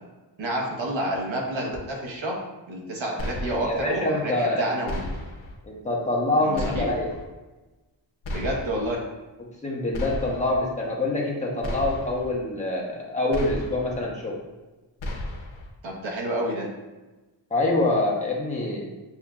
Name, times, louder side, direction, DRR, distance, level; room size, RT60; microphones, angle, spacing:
voice 1, 0.4-2.4 2.7-5.1 6.4-6.9 8.3-9.0 15.8-16.7, right 1 dB, 80° right, -1 dB, 1.1 m, -29 dB
sound 1, 3.2-3.9 4.9-5.6 6.5-7.2 8.2-8.9 9.9-10.6 11.6-12.3 13.3-14.0 15.0-15.7, left 1 dB, 85° left, 0.8 m, -34 dB
voice 2, 3.6-4.7 5.7-7.1 9.4-14.4 17.5-18.8, left 2 dB, 15° left, -4 dB, 0.9 m, -25 dB
7.0 x 2.7 x 2.4 m, 1.1 s
wide cardioid pair, 165°, 46 cm